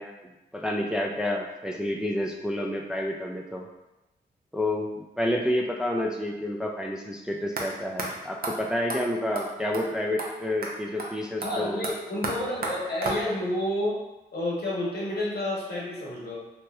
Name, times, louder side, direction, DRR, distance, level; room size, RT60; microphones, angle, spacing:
voice 1, 0.0-3.7 4.5-11.8, left 1 dB, 5° right, 0 dB, 0.4 m, -29 dB
sound 1, 7.6-7.7 8.0-8.1 8.4-8.5 8.9-9.0 9.3-9.5 9.7-9.8 10.2-10.3 10.6-10.7 11.0-11.1 11.4-13.5, right 2 dB, 55° right, 0.7 m, -33 dB
voice 2, 11.4-13.9 14.3-16.4, left 1 dB, 60° left, -4 dB, 1.0 m, -30 dB
2.9 x 2.6 x 2.3 m, 0.98 s
supercardioid pair, 45°, 19 cm